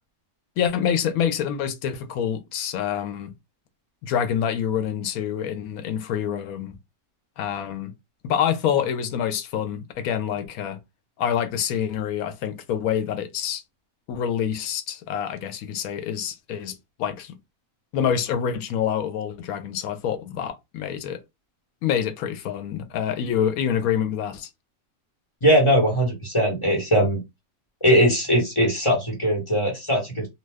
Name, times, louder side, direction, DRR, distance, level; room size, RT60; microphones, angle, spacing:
voice 1, 0.6-3.3 4.0-6.8 7.4-7.9 8.2-10.8 11.2-13.6 14.1-17.4 17.9-21.2 21.8-24.5, left 8 dB, 85° left, 1.0 m, -26 dB
voice 2, 25.4-27.2 27.8-30.3, equal, 25° left, 1.0 m, -20 dB
2.5 x 2.3 x 3.3 m
omnidirectional pair, 1.5 m